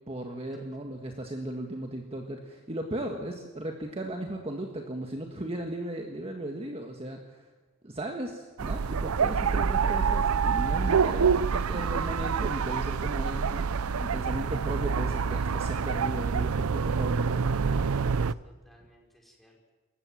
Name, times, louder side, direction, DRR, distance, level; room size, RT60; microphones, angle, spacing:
voice 1, 0.1-7.5 7.8-17.5, right 1 dB, 30° right, 2 dB, 1.7 m, -36 dB
sound 1, 8.6-18.3, right 5 dB, 85° right, 0.6 m, -27 dB
voice 2, 17.8-19.7, equal, ahead, -1 dB, 5.3 m, -61 dB
28.0 x 15.0 x 7.6 m, 1.3 s
head